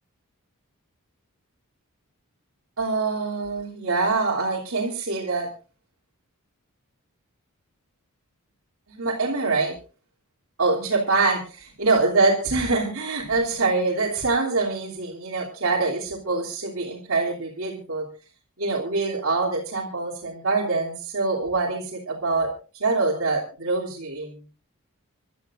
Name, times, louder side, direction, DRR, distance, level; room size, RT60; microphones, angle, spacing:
voice 1, 2.8-5.5 8.9-9.7 10.6-18.1 18.6-22.5 22.8-24.4, right 3 dB, 70° right, -3 dB, 3.2 m, -24 dB
27.0 x 12.5 x 2.6 m, 0.36 s
head